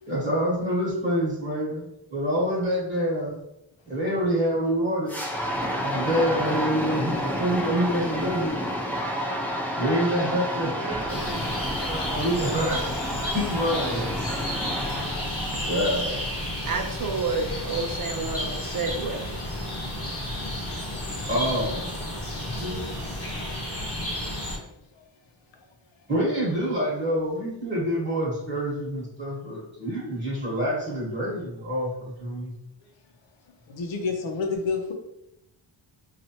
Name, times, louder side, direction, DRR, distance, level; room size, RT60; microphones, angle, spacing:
voice 1, 0.1-3.4 3.9-5.2 5.8-8.6 9.8-10.7 11.3-12.8 13.3-14.2 15.6-16.2 21.3-21.9 22.6-23.2 26.1-32.5, equal, 25° right, -5 dB, 1.1 m, -27 dB
sound 1, 5.1-16.4, equal, 5° left, 0.4 m, -30 dB
voice 2, 9.2-9.5 10.8-11.5 16.6-19.2, right 4 dB, 45° right, 4 dB, 0.5 m, -31 dB
sound 2, 11.1-24.6, left 1 dB, 30° left, 1.1 m, -32 dB
voice 3, 33.7-34.9, left 4 dB, 70° left, 4 dB, 0.8 m, -29 dB
4.3 x 2.5 x 2.8 m, 0.85 s
wide cardioid pair, 130°, 47 cm